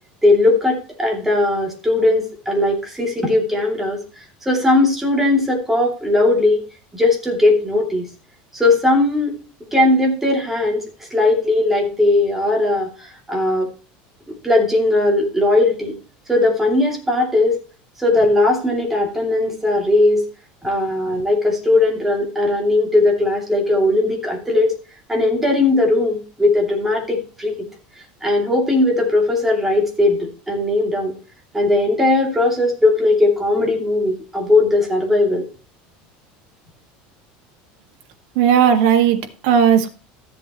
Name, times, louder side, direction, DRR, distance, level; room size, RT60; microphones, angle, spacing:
voice 1, 0.2-4.0 4.4-6.6 6.9-8.1 8.5-9.4 9.7-10.8 11.1-13.7 14.3-16.0 16.3-17.6 18.0-20.2 20.6-24.7 25.1-27.5 28.2-31.1 31.5-35.4, left 2 dB, 5° right, 0 dB, 2.7 m, -18 dB
voice 2, 38.4-39.9, right 8 dB, 70° right, 5 dB, 1.8 m, -15 dB
13.5 x 7.7 x 3.0 m, 0.36 s
cardioid pair, 155°, 4 cm